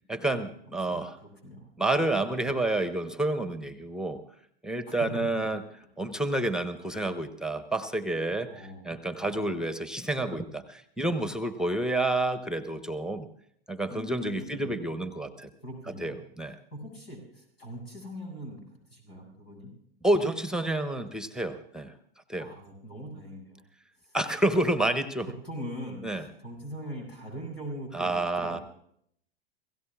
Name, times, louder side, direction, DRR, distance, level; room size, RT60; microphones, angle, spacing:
voice 1, 0.1-1.2 1.8-4.2 4.6-5.6 6.0-8.5 8.8-13.3 13.7-15.5 16.0-16.6 20.0-21.9 22.3-22.5 24.1-25.3 26.0-26.2 27.9-28.6, right 2 dB, ahead, 10 dB, 0.9 m, -29 dB
voice 2, 0.8-1.7 4.9-5.0 8.5-8.8 13.9-14.8 15.6-16.2 16.7-18.6 18.9-19.7 22.4-23.6 24.0-24.2 25.4-28.6, equal, 85° left, 0 dB, 7.7 m, -41 dB
30.0 x 17.0 x 2.4 m, 0.68 s
hypercardioid pair, 95°, 30 cm